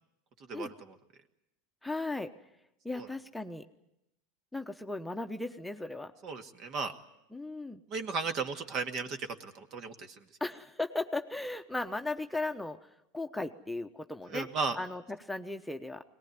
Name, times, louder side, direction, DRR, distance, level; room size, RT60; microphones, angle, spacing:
voice 1, 0.5-0.9 3.0-3.1 6.2-6.9 7.9-10.2 14.3-14.8, right 4 dB, 45° right, 7 dB, 2.0 m, -35 dB
voice 2, 1.8-2.3 2.8-3.6 4.5-6.1 7.3-7.8 10.4-14.5 14.7-16.0, left 2 dB, 5° left, 5 dB, 1.0 m, -36 dB
22.0 x 19.0 x 9.6 m, 0.87 s
hypercardioid pair, 90°, 0 cm